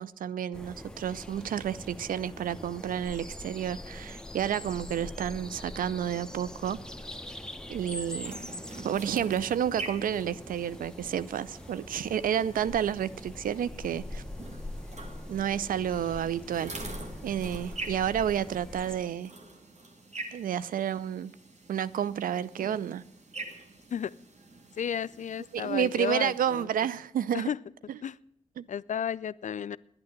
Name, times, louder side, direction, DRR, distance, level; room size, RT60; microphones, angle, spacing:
voice 1, 0.0-6.8 7.7-8.3 8.8-14.2 15.3-16.9 17.2-19.3 20.3-21.3 21.7-23.0 25.5-27.5 28.6-28.7, right 9 dB, 85° right, 18 dB, 0.5 m, -30 dB
sound 1, 0.5-19.0, left 1 dB, 5° left, 1.1 m, -43 dB
sound 2, 8.2-26.7, right 2 dB, 55° right, 2.2 m, -46 dB
voice 2, 24.8-26.7 27.3-27.6 28.0-28.2 28.7-29.8, left 8 dB, 60° left, 20 dB, 0.4 m, -33 dB
10.5 x 8.8 x 9.3 m, 0.73 s
cardioid pair, 45°, 14 cm